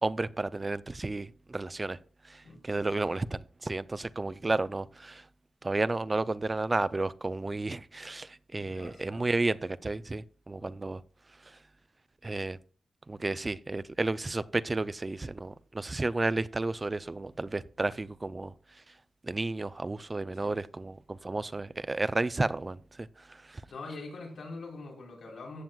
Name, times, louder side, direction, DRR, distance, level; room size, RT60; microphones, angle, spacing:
voice 1, 0.0-2.0 2.3-5.2 5.6-11.0 12.2-12.6 13.1-18.5 19.2-23.6, right 2 dB, 20° right, 0.4 m, -32 dB
voice 2, 2.4-3.1 8.6-9.3 10.6-10.8 20.3-20.5 23.7-25.6, left 3 dB, 75° left, 3.5 m, -44 dB
14.5 x 7.7 x 2.3 m
wide cardioid pair, 140°, 0 cm